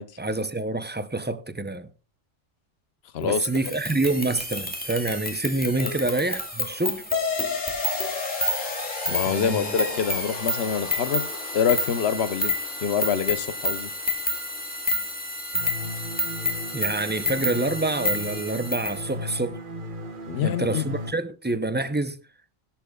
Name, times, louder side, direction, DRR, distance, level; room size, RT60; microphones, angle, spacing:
voice 1, 0.2-1.9 3.2-7.0 9.3-9.7 16.7-19.6 20.4-22.2, right 2 dB, 15° right, 0.3 m, -27 dB
voice 2, 3.1-3.5 5.8-6.0 9.1-11.2 11.5-13.9 20.3-20.8, left 7 dB, 55° left, 1.1 m, -26 dB
sound 1, 3.4-19.0, left 1 dB, 5° left, 2.2 m, -30 dB
sound 2, 7.1-16.1, left 5 dB, 80° left, 2.0 m, -34 dB
sound 3, 15.5-21.1, equal, 45° right, 1.2 m, -36 dB
18.5 x 10.5 x 2.3 m
omnidirectional pair, 1.3 m